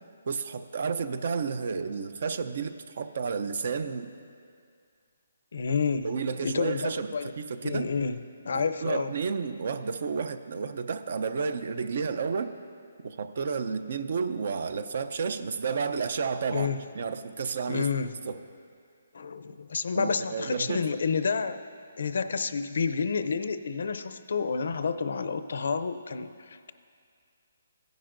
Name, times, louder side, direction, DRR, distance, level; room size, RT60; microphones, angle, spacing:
voice 1, 0.3-4.1 6.0-7.9 8.5-12.5 13.0-16.7 16.9-17.9 18.2-18.4 19.9-20.9, right 5 dB, 50° right, 11 dB, 0.5 m, -31 dB
voice 2, 5.5-6.1 6.4-7.3 7.6-8.2 8.4-9.1 16.5-16.8 17.7-18.1 19.1-21.6 22.0-26.7, left 5 dB, 65° left, 12 dB, 0.5 m, -29 dB
17.0 x 10.5 x 2.6 m, 2.3 s
hypercardioid pair, 170°, 0 cm